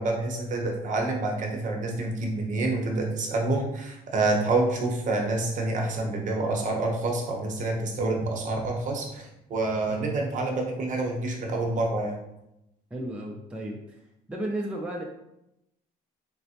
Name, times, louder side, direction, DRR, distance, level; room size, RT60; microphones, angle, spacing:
voice 1, 0.0-12.2, right 2 dB, 50° right, 1 dB, 0.7 m, -27 dB
voice 2, 12.9-14.0 14.3-15.0, right 1 dB, 5° right, 0 dB, 0.4 m, -33 dB
4.1 x 2.0 x 2.7 m, 0.86 s
cardioid pair, 110°, 17 cm